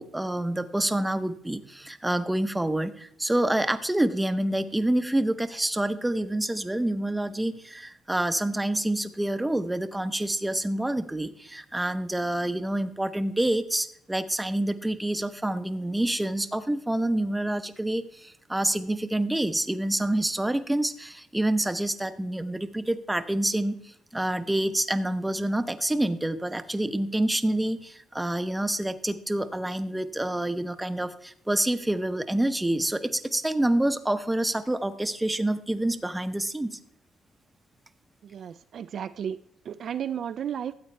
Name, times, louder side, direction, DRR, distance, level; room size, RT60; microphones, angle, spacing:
voice 1, 0.0-36.8, right 1 dB, 10° right, 11 dB, 0.7 m, -27 dB
voice 2, 38.2-39.4 39.6-40.7, right 9 dB, 60° right, 12 dB, 0.3 m, -33 dB
13.0 x 8.1 x 3.2 m, 0.69 s
cardioid pair, 100°, 0 cm